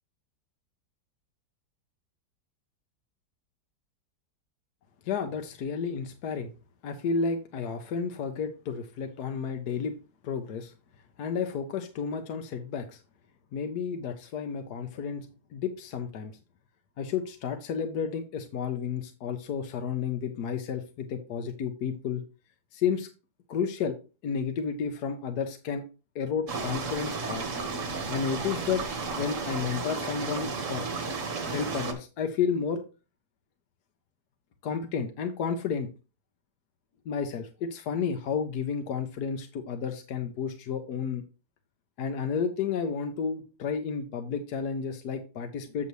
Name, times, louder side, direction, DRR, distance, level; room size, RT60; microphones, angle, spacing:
voice 1, 5.0-6.5 6.8-9.9 10.2-10.7 11.2-13.0 13.5-16.3 17.0-22.2 22.7-23.1 23.5-23.9 24.2-25.8 26.1-27.5 28.1-28.8 29.1-30.9 31.4-32.8 34.6-35.9 37.0-41.2 42.0-45.9, left 6 dB, 70° left, 6 dB, 1.3 m, -31 dB
sound 1, 26.5-31.9, right 4 dB, 50° right, 1.5 m, -33 dB
8.1 x 6.6 x 3.1 m, 0.33 s
omnidirectional pair, 1.9 m